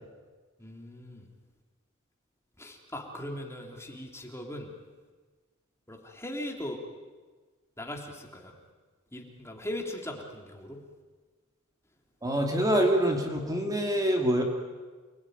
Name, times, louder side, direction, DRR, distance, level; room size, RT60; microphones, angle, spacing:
voice 1, 0.6-1.3 2.6-4.7 5.9-6.8 7.8-8.5 9.1-10.8, left 1 dB, 15° left, 1 dB, 3.2 m, -39 dB
voice 2, 12.2-14.4, right 1 dB, 15° right, 2 dB, 2.8 m, -25 dB
29.0 x 21.5 x 9.4 m, 1.4 s
head